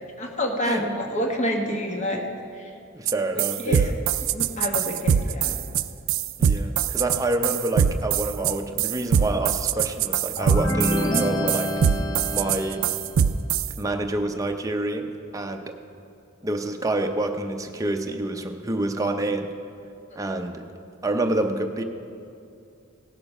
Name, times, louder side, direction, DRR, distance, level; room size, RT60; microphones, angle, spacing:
voice 1, 0.2-2.3 2.6-2.7 3.6-4.0 4.3-5.6 10.9-11.2, equal, 35° left, 2 dB, 1.2 m, -28 dB
voice 2, 2.9-4.0 6.4-11.7 12.3-12.9 13.8-15.8 16.4-19.5 20.2-20.7 21.0-21.8, right 2 dB, 15° right, 5 dB, 0.6 m, -27 dB
sound 1, 3.1-3.2 3.4-13.7, right 8 dB, 75° right, 0.4 m, -22 dB
sound 2, 10.4-13.2, left 1 dB, 20° left, 0.7 m, -28 dB
17.0 x 6.8 x 5.3 m, 2.6 s
head